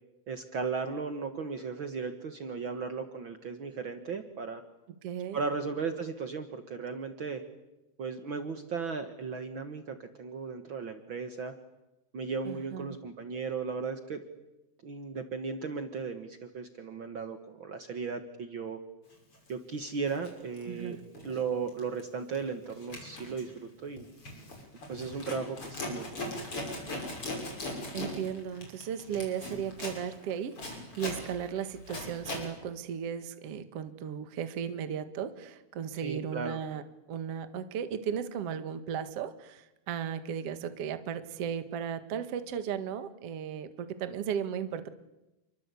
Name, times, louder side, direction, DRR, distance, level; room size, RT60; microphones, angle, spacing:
voice 1, 0.3-4.6 5.3-7.4 8.0-11.5 12.1-14.2 14.8-18.8 19.5-24.0 24.9-26.2 36.0-36.6, right 5 dB, 85° right, 7 dB, 1.1 m, -36 dB
voice 2, 5.0-5.4 12.5-13.0 20.7-21.0 27.9-36.8 37.1-44.9, right 8 dB, 50° right, 10 dB, 1.9 m, -36 dB
Zipper (clothing), 19.3-19.5 20.0-21.4 21.7-22.0 22.3-32.5, left 1 dB, 30° left, 7.0 m, -40 dB
29.0 x 23.5 x 8.4 m, 0.97 s
omnidirectional pair, 4.7 m